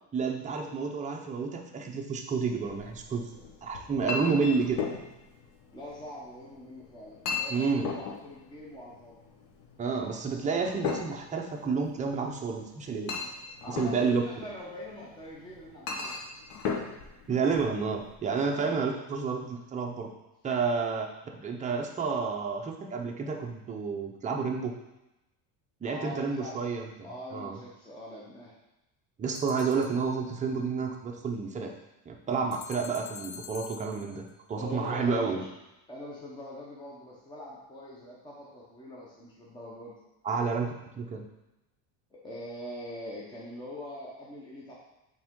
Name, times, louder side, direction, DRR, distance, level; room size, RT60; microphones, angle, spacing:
voice 1, 0.1-3.2 3.6-4.8 7.5-7.9 9.8-13.1 13.7-14.2 17.3-20.1 20.4-21.1 21.4-24.7 25.8-26.9 27.3-27.6 29.2-31.7 32.1-35.4 40.2-41.3, right 5 dB, 20° right, 0 dB, 0.6 m, -30 dB
Chink clink, 2.6-18.1, left 5 dB, 65° left, 1.1 m, -38 dB
voice 2, 4.2-4.6 5.7-9.2 13.6-16.2 18.5-18.8 25.9-28.5 34.6-35.5 35.9-40.0 42.1-44.7, left 1 dB, 10° left, -5 dB, 0.9 m, -43 dB
sound 1, 29.3-30.4 32.5-34.3, left 7 dB, 80° left, 0.7 m, -46 dB
7.7 x 3.5 x 3.7 m, 0.96 s
cardioid pair, 155°, 42 cm